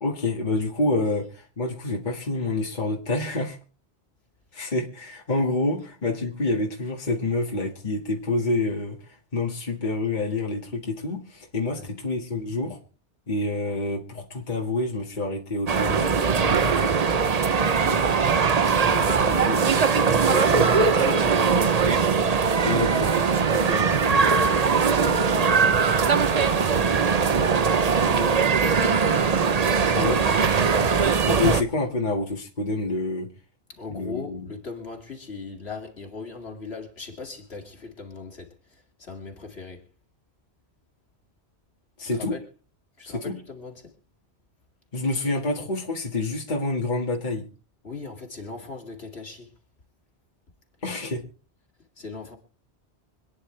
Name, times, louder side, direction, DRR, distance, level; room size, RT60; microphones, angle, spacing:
voice 1, 0.0-3.6 4.5-12.8 13.3-17.0 22.6-23.2 29.9-30.2 31.3-33.3 33.9-34.5 42.0-42.4 43.0-43.3 44.9-47.5 50.8-51.2, left 2 dB, 45° left, 2.0 m, -27 dB
sound 1, 15.7-31.6, right 5 dB, 40° right, 0.8 m, -21 dB
voice 2, 17.8-18.1 18.5-22.3 23.5-25.9 26.3-29.0 29.7-31.0 31.5-31.7 33.7-39.9 42.0-42.4 43.0-43.9 47.8-49.5 51.1-51.2 52.0-52.4, left 4 dB, 70° left, 2.7 m, -38 dB
26.0 x 9.9 x 3.3 m
omnidirectional pair, 1.1 m